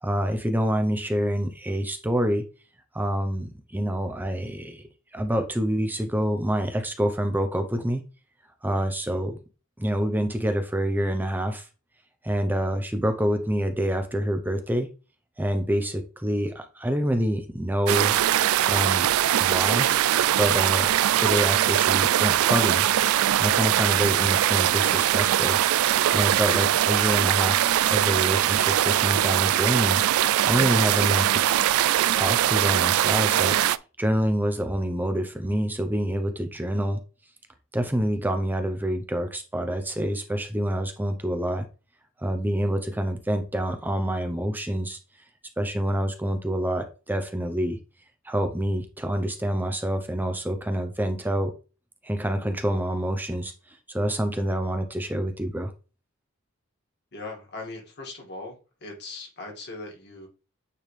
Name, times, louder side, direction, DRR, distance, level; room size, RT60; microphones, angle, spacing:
voice 1, 0.0-2.5 2.9-4.8 5.1-8.0 8.6-9.4 9.8-11.7 12.2-14.9 15.4-18.1 18.6-19.1 19.4-19.9 20.4-20.9 21.2-22.9 23.4-25.6 26.1-30.0 30.5-31.4 32.1-33.6 34.0-37.0 37.7-41.7 42.2-45.0 45.6-47.8 48.2-51.5 52.0-53.5 53.9-55.7, equal, 10° right, 7 dB, 0.6 m, -26 dB
sound 1, 17.9-33.8, right 12 dB, 75° right, 0.3 m, -21 dB
voice 2, 57.1-58.6 58.8-60.3, left 2 dB, 50° left, 0 dB, 2.2 m, -39 dB
9.1 x 3.5 x 3.3 m, 0.33 s
head